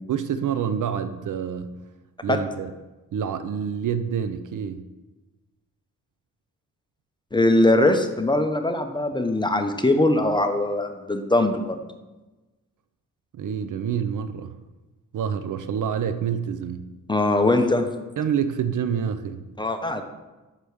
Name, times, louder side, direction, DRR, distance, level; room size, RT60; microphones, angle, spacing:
voice 1, 0.1-1.8 2.2-2.7 3.1-4.9 13.3-14.5 15.1-16.9 18.2-19.4, right 8 dB, 60° right, 10 dB, 0.6 m, -27 dB
voice 2, 7.3-11.8 17.1-17.9 19.6-20.0, left 2 dB, 15° left, 6 dB, 0.6 m, -21 dB
5.8 x 5.0 x 6.2 m, 1.1 s
cardioid pair, 90°, 34 cm